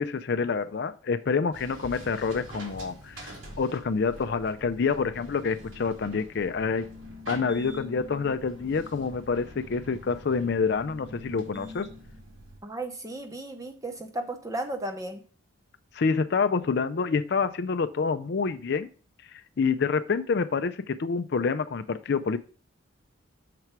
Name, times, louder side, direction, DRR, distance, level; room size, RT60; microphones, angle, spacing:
voice 1, 0.0-6.9 7.3-11.9 15.9-18.9 19.3-22.4, left 5 dB, 50° left, 10 dB, 0.4 m, -27 dB
sound 1, 1.5-12.6, equal, 65° right, 2.3 m, -44 dB
voice 2, 12.6-15.2, right 1 dB, 15° right, 6 dB, 0.8 m, -34 dB
6.7 x 4.6 x 5.9 m, 0.39 s
head